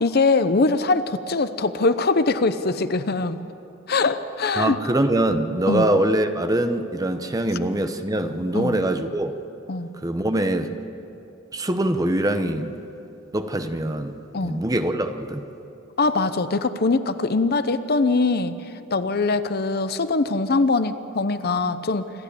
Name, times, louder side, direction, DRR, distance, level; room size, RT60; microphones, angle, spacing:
voice 1, 0.0-3.4 3.9-4.8 5.7-5.9 8.5-8.8 9.7-9.9 14.3-14.6 16.0-18.6 18.9-22.0, left 3 dB, 50° left, 12 dB, 0.7 m, -22 dB
voice 2, 4.6-9.3 10.0-10.7 11.5-12.8 13.3-14.2 14.4-15.4, right 1 dB, 20° right, 8 dB, 0.9 m, -23 dB
26.5 x 13.0 x 8.5 m, 2.8 s
head